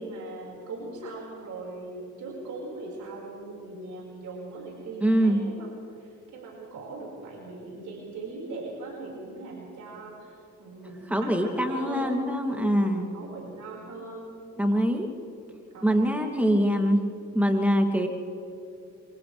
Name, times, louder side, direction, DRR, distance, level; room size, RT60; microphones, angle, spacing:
voice 1, 0.0-12.2 12.5-14.3 15.7-16.1, right 2 dB, 75° right, -3 dB, 5.8 m, -40 dB
voice 2, 5.0-5.4 11.1-13.1 14.6-15.1 15.8-17.0 17.3-18.1, equal, 5° right, 2 dB, 3.0 m, -23 dB
28.5 x 26.5 x 3.6 m, 2.9 s
cardioid pair, 90°, 30 cm